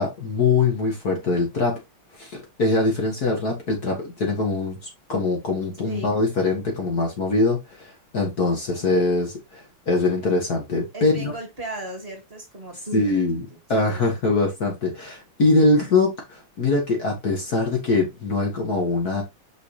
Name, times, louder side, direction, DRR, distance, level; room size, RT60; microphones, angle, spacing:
voice 1, 0.0-1.8 2.2-11.3 12.9-13.4 13.7-19.2, left 3 dB, 45° left, 2.0 m, -23 dB
voice 2, 10.9-13.0 13.7-14.0, right 1 dB, 25° right, 2.2 m, -35 dB
6.1 x 5.2 x 3.2 m
omnidirectional pair, 2.4 m